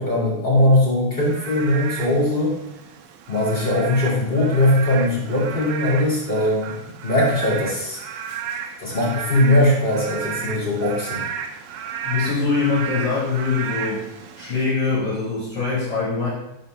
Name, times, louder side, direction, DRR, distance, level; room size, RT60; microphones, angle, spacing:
voice 1, 0.0-2.5 3.3-6.8 7.0-8.0 8.8-11.2, left 1 dB, 20° left, -8 dB, 1.6 m, -20 dB
Frog / Rain, 1.2-14.6, right 7 dB, 85° right, 2.0 m, -33 dB
voice 2, 12.1-14.0 14.4-16.3, left 4 dB, 55° left, -7 dB, 2.2 m, -23 dB
5.0 x 4.3 x 5.3 m, 0.88 s
omnidirectional pair, 3.4 m